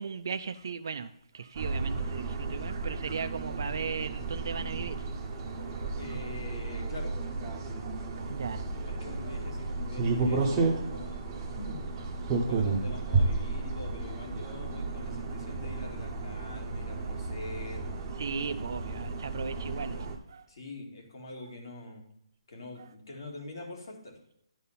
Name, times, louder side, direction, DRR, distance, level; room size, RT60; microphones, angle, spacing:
voice 1, 0.0-5.1 5.5-6.4 8.2-8.8 11.3-11.4 18.2-20.5 22.8-22.9, right 6 dB, 40° right, 0.3 m, -37 dB
sound 1, 1.5-20.2, right 3 dB, 10° right, 0.7 m, -33 dB
voice 2, 6.0-7.2 8.8-11.2 11.5-11.8 12.4-17.9 20.5-22.0 22.5-24.2, left 2 dB, 45° left, 2.1 m, -44 dB
11.0 x 4.1 x 5.5 m
hypercardioid pair, 180°, 3 cm